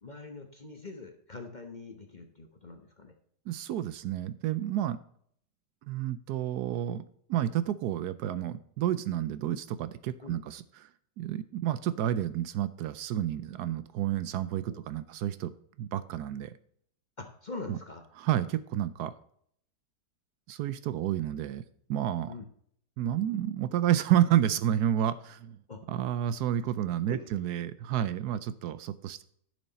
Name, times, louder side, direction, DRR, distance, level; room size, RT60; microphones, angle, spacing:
voice 1, 0.0-3.1 10.2-10.4 14.7-14.8 17.2-18.0 20.9-21.1 22.3-22.4 25.7-25.8 27.1-27.2, left 3 dB, 35° left, 5 dB, 0.9 m, -43 dB
voice 2, 3.5-5.0 5.9-7.0 7.3-10.9 11.2-16.5 17.7-17.8 18.2-19.1 20.5-21.6 21.9-22.3 23.0-25.6 25.9-29.2, right 11 dB, 75° right, 15 dB, 1.1 m, -30 dB
11.0 x 6.5 x 4.1 m, 0.65 s
omnidirectional pair, 1.8 m